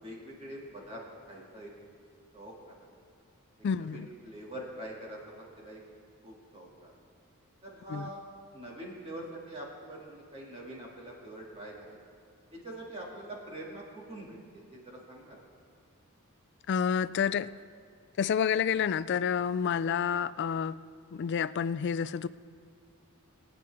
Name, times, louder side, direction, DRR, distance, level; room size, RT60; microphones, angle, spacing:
voice 1, 0.0-1.7 2.3-2.8 3.7-5.8 6.2-6.9 7.6-8.2 8.5-12.0 12.5-15.4, right 1 dB, 30° right, -4 dB, 2.5 m, -44 dB
voice 2, 3.6-4.1 7.9-8.1 16.7-17.5 18.2-20.8 21.1-22.3, left 7 dB, 50° left, 16 dB, 0.3 m, -29 dB
22.5 x 9.3 x 3.6 m, 2.2 s
head